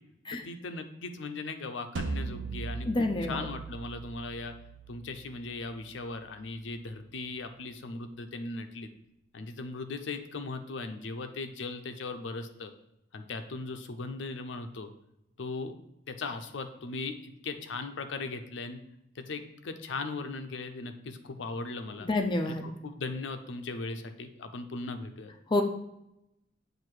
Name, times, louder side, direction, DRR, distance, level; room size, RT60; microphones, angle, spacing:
voice 1, 0.3-4.5 4.9-8.9 9.3-12.7 13.1-14.9 15.4-15.7 16.1-18.8 19.2-22.1 22.5-25.3, left 3 dB, 75° left, 8 dB, 0.5 m, -38 dB
sound 1, 2.0-7.0, right 3 dB, 85° right, 0.4 m, -40 dB
voice 2, 2.9-3.5 22.0-22.7 25.5-25.6, left 2 dB, 25° left, 4 dB, 0.4 m, -28 dB
7.6 x 2.6 x 4.7 m, 0.83 s
head